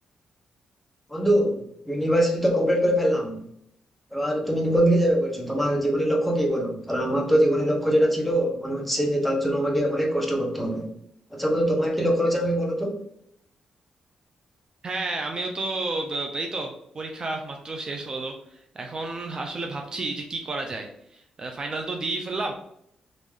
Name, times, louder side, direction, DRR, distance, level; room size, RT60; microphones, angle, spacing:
voice 1, 1.1-3.4 4.1-10.9 11.3-13.0, equal, 5° left, 1 dB, 0.8 m, -23 dB
voice 2, 14.8-22.5, right 2 dB, 40° right, 3 dB, 0.5 m, -31 dB
3.2 x 2.5 x 3.6 m, 0.71 s
cardioid pair, 95°, 2 cm